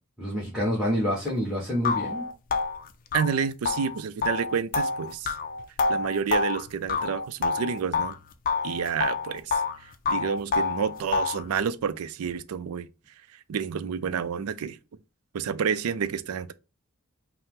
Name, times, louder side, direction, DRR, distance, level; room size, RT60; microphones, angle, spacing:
voice 1, 0.2-2.2, equal, 5° right, 1.1 m, -27 dB
sound 1, 1.3-1.4 1.8-8.2 8.5-9.8 10.1-11.5, left 4 dB, 40° left, 0.4 m, -27 dB
voice 2, 3.1-5.3 5.9-8.2 8.6-9.6 10.1-12.9 13.5-14.8 15.3-16.5, right 7 dB, 90° right, 0.4 m, -29 dB
5.4 x 2.0 x 3.6 m
head